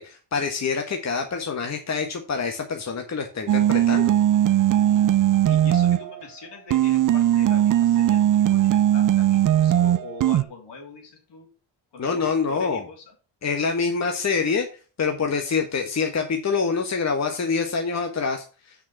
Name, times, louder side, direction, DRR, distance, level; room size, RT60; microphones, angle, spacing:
voice 1, 0.0-4.1 12.0-12.8 13.4-14.7 15.0-18.7, left 5 dB, 35° left, 4 dB, 1.3 m, -26 dB
sound 1, 3.5-6.2 6.7-10.4, right 12 dB, 45° right, 0.5 m, -19 dB
voice 2, 4.8-11.5 11.9-13.1, left 4 dB, 65° left, 2 dB, 3.6 m, -43 dB
6.4 x 6.0 x 7.1 m, 0.36 s
cardioid pair, 80°, 44 cm